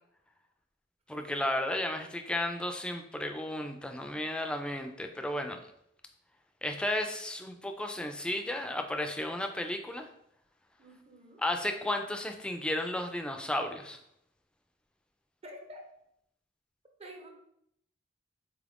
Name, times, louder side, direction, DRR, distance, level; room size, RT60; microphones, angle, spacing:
voice 1, 1.1-5.6 6.6-10.1 11.4-14.0, left 1 dB, 5° left, 5 dB, 0.3 m, -33 dB
voice 2, 10.8-11.4 15.4-15.9 17.0-17.3, equal, 35° right, 3 dB, 0.6 m, -48 dB
4.2 x 2.4 x 3.4 m, 0.74 s
head